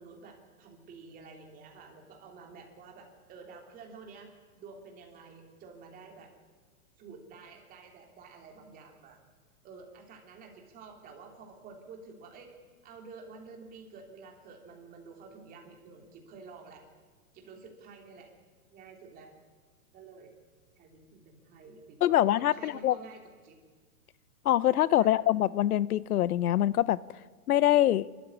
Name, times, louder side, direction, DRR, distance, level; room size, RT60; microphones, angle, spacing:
voice 1, 0.0-4.3 4.6-6.3 7.0-9.2 9.6-12.5 12.8-16.8 17.3-18.3 18.7-19.3 19.9-20.3 20.8-22.2 22.5-23.6 25.0-25.1, right 4 dB, 20° right, 2 dB, 3.4 m, -50 dB
voice 2, 22.0-23.0 24.5-27.0 27.5-28.1, left 12 dB, 75° left, 20 dB, 0.7 m, -24 dB
26.5 x 13.5 x 9.8 m, 1.5 s
hypercardioid pair, 160°, 44 cm